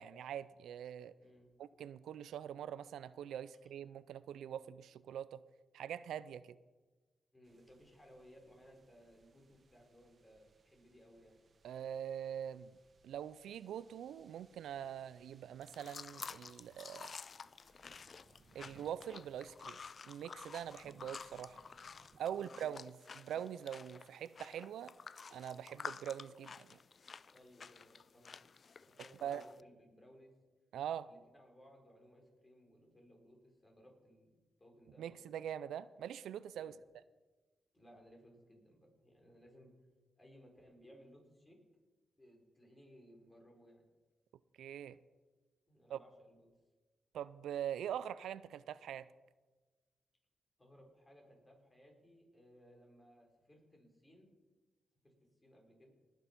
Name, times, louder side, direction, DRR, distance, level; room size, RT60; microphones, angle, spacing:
voice 1, 0.0-1.1 1.6-5.4 5.7-6.6 11.6-12.7 13.0-17.2 18.5-19.8 20.1-21.6 22.2-24.9 25.3-26.8 29.2-29.4 30.7-31.1 35.0-36.7 44.6-45.0 45.9-46.0 47.1-49.1, right 9 dB, 85° right, 0.4 m, -43 dB
voice 2, 1.2-1.5 7.3-11.4 22.3-22.6 27.3-28.4 28.8-30.3 31.1-34.3 34.6-35.4 36.5-36.8 37.7-39.7 40.2-41.6 42.2-43.8 45.7-46.5 50.6-54.3 55.0-55.1 55.4-55.9, equal, 20° left, 4.5 m, -62 dB
sound 1, 7.4-22.2, right 3 dB, 50° right, 1.1 m, -69 dB
sound 2, 15.6-29.6, left 5 dB, 50° left, 0.3 m, -51 dB
19.5 x 7.0 x 5.8 m
cardioid pair, 70°, 0 cm